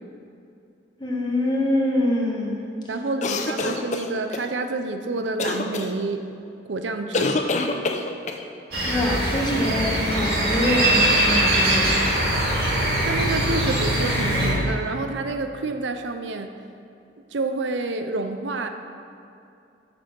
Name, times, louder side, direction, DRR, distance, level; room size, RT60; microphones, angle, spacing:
voice 1, 1.0-2.6 8.8-12.1, left 1 dB, 25° left, -3 dB, 1.3 m, -24 dB
voice 2, 2.9-6.3 6.7-7.4 13.0-16.5 17.3-18.7, right 3 dB, 85° right, 7 dB, 0.6 m, -28 dB
sound 1, 3.2-4.5 5.4-5.9 7.1-8.4, left 3 dB, 40° left, 0.5 m, -25 dB
sound 2, 8.7-14.5, right 1 dB, 55° right, 2.1 m, -22 dB
7.1 x 6.1 x 6.1 m, 2.6 s
head